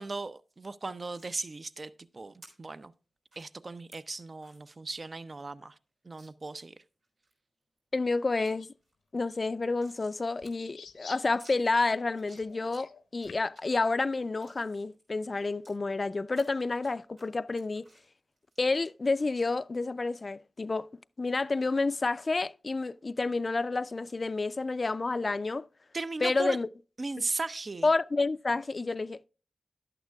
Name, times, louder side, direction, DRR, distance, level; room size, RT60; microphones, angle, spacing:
voice 1, 0.0-2.9 3.4-5.8 6.0-6.7 25.9-26.6 27.0-27.9, right 3 dB, 50° right, 0.5 m, -37 dB
sound 1, 1.1-1.3 2.4-2.5 3.3-3.5 3.9-4.0 4.4-4.6 5.0-5.1 5.4-5.5 6.2-6.3 6.8-7.3 7.8-8.1 8.4-8.5 8.8-10.2 10.4-10.5 10.8-10.9 11.4-11.5 12.1-12.8 13.2-13.6 14.1-15.7 16.3-16.9 17.2-19.0 19.3-19.5, right 1 dB, 85° right, 3.7 m, -57 dB
voice 2, 7.9-8.7 9.1-17.8 18.6-20.9 21.2-25.7 26.2-26.7 27.8-29.2, left 3 dB, 50° left, 0.4 m, -29 dB
sound 2, 8.4-8.7 9.3-9.4 10.4-13.6, left 6 dB, 90° left, 0.8 m, -50 dB
11.5 x 8.8 x 2.3 m
cardioid pair, 45°, 0 cm